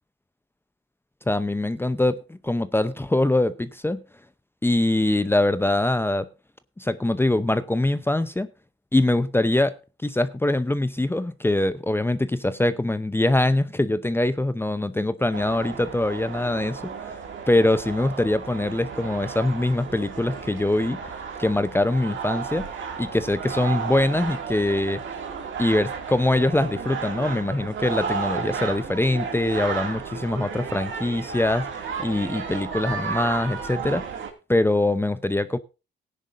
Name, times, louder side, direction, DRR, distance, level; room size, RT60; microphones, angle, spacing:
voice 1, 1.3-4.0 4.6-6.3 6.8-8.5 8.9-9.7 10.0-17.2 17.5-21.0 21.4-22.7 23.0-25.0 25.6-34.0 34.5-35.6, left 1 dB, 10° left, 0.7 m, -23 dB
sound 1, 15.3-34.3, right 6 dB, 70° right, 2.4 m, -33 dB
17.5 x 10.0 x 2.6 m
cardioid pair, 80°, 21 cm